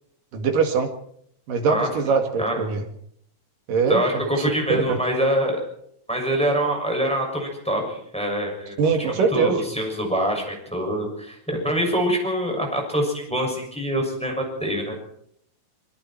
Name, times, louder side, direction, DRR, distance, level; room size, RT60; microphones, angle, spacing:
voice 1, 0.3-0.9 1.5-2.8 3.7-4.5 4.9-5.0 8.8-9.6, right 5 dB, 55° right, 5 dB, 3.0 m, -22 dB
voice 2, 3.9-5.6 6.1-8.7 9.3-15.0, equal, ahead, 1 dB, 6.2 m, -25 dB
25.0 x 23.5 x 4.6 m, 0.70 s
omnidirectional pair, 5.6 m